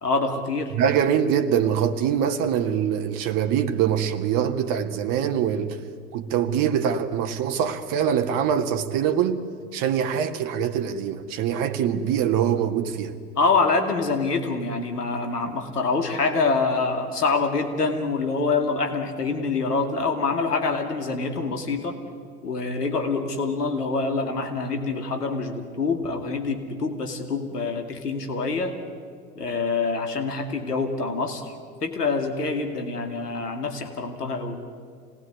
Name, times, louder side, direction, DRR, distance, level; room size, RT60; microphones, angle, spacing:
voice 1, 0.0-0.7 13.4-22.0 22.4-28.7 29.4-31.5 31.8-34.6, left 4 dB, 80° left, 2.6 m, -25 dB
voice 2, 0.7-5.8 6.1-9.4 9.7-13.1, right 8 dB, 45° right, 2.0 m, -24 dB
27.0 x 19.0 x 9.7 m
figure-of-eight pair, 80°, 46 cm